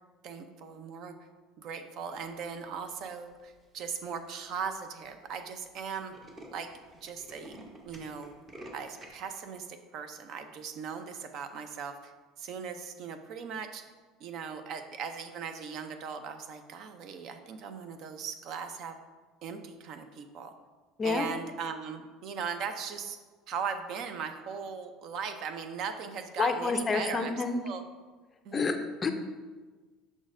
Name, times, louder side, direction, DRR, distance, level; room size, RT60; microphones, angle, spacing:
voice 1, 0.2-1.1 1.6-6.1 6.5-6.7 7.0-7.6 7.8-8.4 8.7-12.1 12.4-13.8 14.2-19.0 19.4-20.5 21.0-23.2 23.5-27.4 27.6-27.8 28.4-28.6, right 6 dB, 50° right, 8 dB, 0.5 m, -38 dB
Tools, 3.2-3.6 4.2-4.3 4.6-4.7 4.9-5.1 5.4-5.5 5.8-9.3, right 1 dB, 25° right, 0.8 m, -49 dB
voice 2, 26.4-27.6 28.5-29.1, left 4 dB, 20° left, 7 dB, 0.4 m, -29 dB
6.1 x 6.1 x 2.6 m, 1.3 s
cardioid pair, 140°, 0 cm